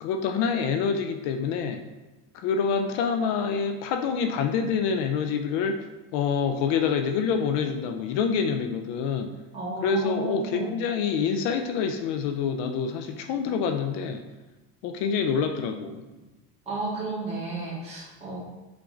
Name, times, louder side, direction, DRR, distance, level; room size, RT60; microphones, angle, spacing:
voice 1, 0.0-1.8 2.3-5.8 6.1-9.3 9.8-14.2 14.8-16.1, left 6 dB, 65° left, 6 dB, 0.6 m, -26 dB
voice 2, 9.5-10.7 16.7-18.4, right 3 dB, 15° right, -9 dB, 2.2 m, -32 dB
7.9 x 3.7 x 3.8 m, 1.1 s
cardioid pair, 165°, 46 cm